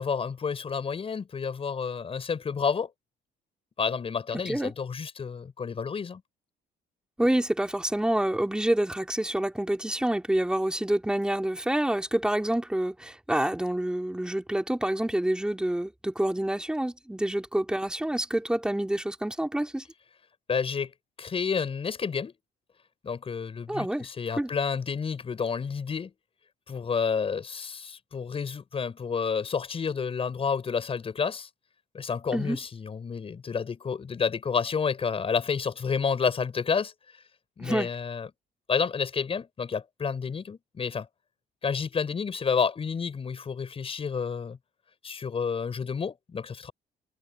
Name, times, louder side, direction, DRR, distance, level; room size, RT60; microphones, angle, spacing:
voice 1, 0.0-2.9 3.8-6.2 20.5-20.9 21.2-22.3 23.0-26.1 26.7-31.5 31.9-36.9 37.6-38.3 38.7-41.1 41.6-44.6 45.0-46.7, left 6 dB, 35° left, 6.3 m, -30 dB
voice 2, 4.3-4.7 7.2-19.8 23.7-24.1 24.4-24.5 32.3-32.6 37.6-37.9, right 1 dB, 5° right, 3.4 m, -27 dB
cardioid pair, 110°, 17 cm